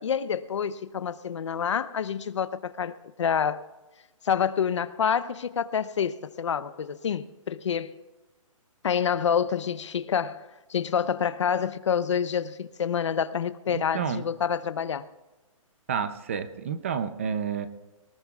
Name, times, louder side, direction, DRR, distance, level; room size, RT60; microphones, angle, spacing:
voice 1, 0.0-3.6 4.2-7.9 8.8-10.4 10.7-15.1, left 7 dB, 55° left, 0.8 m, -27 dB
voice 2, 13.7-14.2 15.9-17.7, right 7 dB, 25° right, 0.5 m, -30 dB
23.0 x 19.5 x 2.4 m
hypercardioid pair, 175°, 18 cm